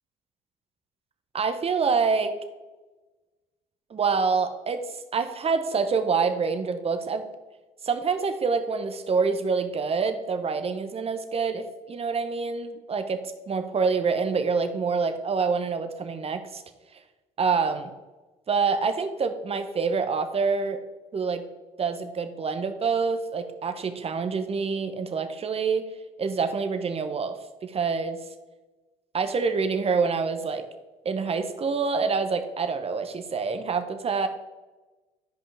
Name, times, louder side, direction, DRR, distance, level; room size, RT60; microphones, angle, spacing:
voice 1, 1.3-2.4 3.9-4.8 5.1-7.3 7.8-16.6 17.4-17.9 18.5-20.8 21.1-21.4 21.8-25.9 26.2-28.2 29.1-30.6 31.0-34.3, right 5 dB, 35° right, 8 dB, 1.0 m, -26 dB
12.5 x 5.3 x 3.5 m, 1.2 s
hypercardioid pair, 60°, 17 cm